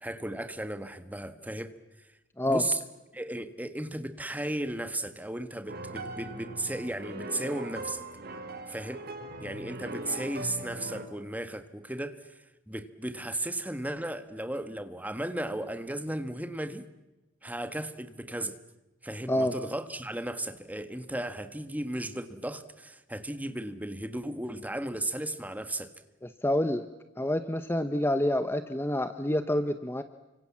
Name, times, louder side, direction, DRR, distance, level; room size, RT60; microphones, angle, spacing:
voice 1, 0.0-1.7 2.4-2.8 3.1-8.0 8.7-9.0 9.4-12.3 12.7-16.8 17.4-18.6 19.0-25.9, right 1 dB, 10° right, 10 dB, 1.6 m, -35 dB
sound 1, 5.7-11.1, right 1 dB, 50° right, 3.7 m, -40 dB
voice 2, 26.4-26.9 27.2-30.0, left 1 dB, 10° left, 10 dB, 0.9 m, -27 dB
29.5 x 25.5 x 7.5 m, 1.0 s
head